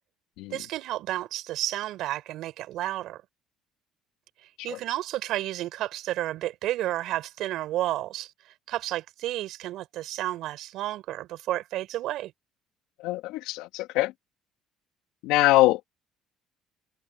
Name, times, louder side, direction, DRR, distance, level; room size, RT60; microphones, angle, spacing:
voice 1, 0.5-3.2 4.6-12.3, right 14 dB, 70° right, 4.7 m, -31 dB
voice 2, 13.0-14.1 15.2-15.8, left 17 dB, 85° left, 2.6 m, -23 dB
cardioid pair, 95°, 0 cm